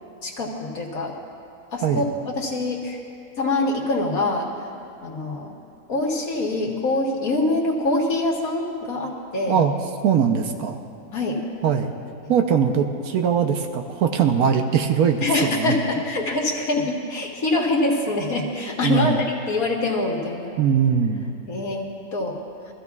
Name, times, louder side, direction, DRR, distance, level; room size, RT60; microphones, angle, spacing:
voice 1, 0.2-1.1 1.7-3.0 3.4-4.5 5.0-5.6 5.9-9.6 11.1-11.4 15.2-19.1 19.5-20.6 21.5-22.4, left 2 dB, 80° left, -1 dB, 2.0 m, -24 dB
voice 2, 10.0-10.8 11.6-11.9 12.3-15.8 18.8-19.2 20.6-21.3, right 7 dB, 90° right, 5 dB, 1.3 m, -21 dB
23.0 x 14.0 x 2.4 m, 2.6 s
omnidirectional pair, 1.5 m